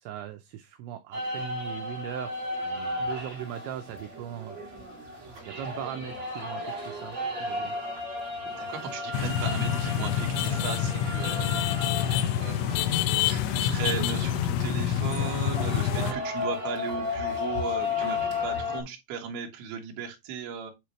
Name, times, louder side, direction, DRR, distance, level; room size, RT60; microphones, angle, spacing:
voice 1, 0.0-2.4 3.0-5.2 5.5-7.7 15.9-16.5, right 10 dB, 80° right, 2.9 m, -39 dB
sound 1, 1.1-18.8, left 3 dB, 35° right, 2.9 m, -34 dB
voice 2, 2.6-3.0 8.6-11.7 12.4-12.6 12.9-13.0 13.2-20.7, right 6 dB, 65° right, 3.1 m, -37 dB
sound 2, 9.1-16.1, left 10 dB, 85° left, 3.0 m, -27 dB
9.5 x 3.7 x 3.1 m
omnidirectional pair, 5.5 m